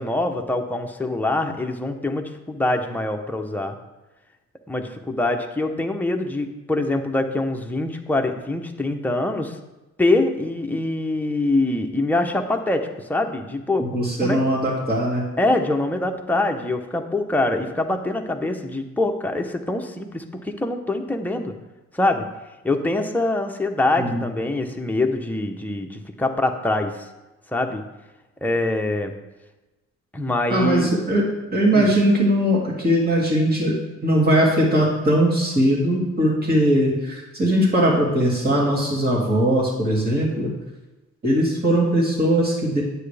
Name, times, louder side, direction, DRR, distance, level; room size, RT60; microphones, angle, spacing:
voice 1, 0.0-3.8 4.7-9.6 10.0-13.8 14.2-14.4 15.4-21.5 21.9-22.3 22.6-27.1 27.5-27.8 28.4-29.1 30.1-30.9 31.7-31.9, left 2 dB, 5° left, 3 dB, 0.9 m, -24 dB
voice 2, 13.9-15.2 24.0-24.3 30.5-31.2 31.5-33.8 34.0-40.5 41.2-42.8, right 1 dB, 30° right, -4 dB, 2.6 m, -20 dB
9.3 x 7.7 x 3.4 m, 1.1 s
cardioid pair, 90°, 30 cm